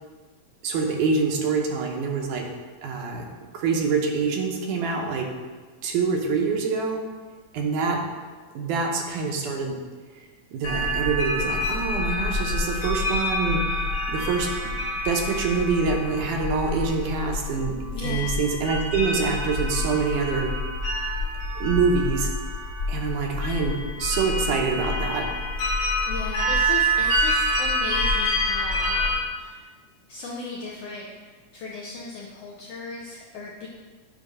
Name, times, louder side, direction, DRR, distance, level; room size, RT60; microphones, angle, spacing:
voice 1, 0.6-2.5 2.8-3.3 3.5-5.3 5.8-7.0 7.5-8.0 8.6-9.7 10.5-13.6 14.1-14.5 15.1-17.7 18.0-20.5 21.6-22.3 22.9-25.3, right 5 dB, 80° right, 1 dB, 2.3 m, -25 dB
sound 1, 10.6-29.1, left 1 dB, 55° left, 1.7 m, -27 dB
voice 2, 17.9-18.3 26.1-29.6 30.1-31.1 31.5-33.7, left 3 dB, 80° left, -3 dB, 1.4 m, -36 dB
8.6 x 3.0 x 5.4 m, 1.4 s
omnidirectional pair, 3.6 m